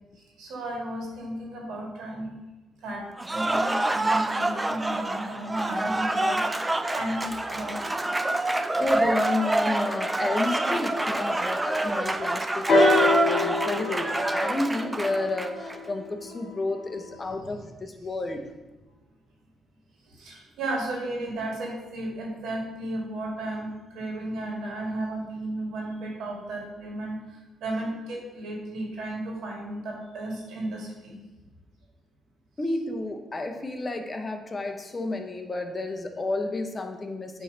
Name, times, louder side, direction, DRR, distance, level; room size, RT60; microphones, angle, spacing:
voice 1, 0.2-2.3 2.8-6.4 6.9-7.9 11.0-11.6 20.1-31.2 37.3-37.4, right 1 dB, 80° right, -2 dB, 2.0 m, -34 dB
Cheering / Applause, 3.2-15.8, right 2 dB, 15° right, 0.4 m, -27 dB
voice 2, 8.8-18.5 32.6-37.4, left 2 dB, 25° left, 5 dB, 0.8 m, -31 dB
sound 1, 12.7-16.5 17.4-17.5, left 2 dB, 60° left, 2.0 m, -25 dB
8.4 x 3.2 x 5.1 m, 1.1 s
cardioid pair, 90°, 0 cm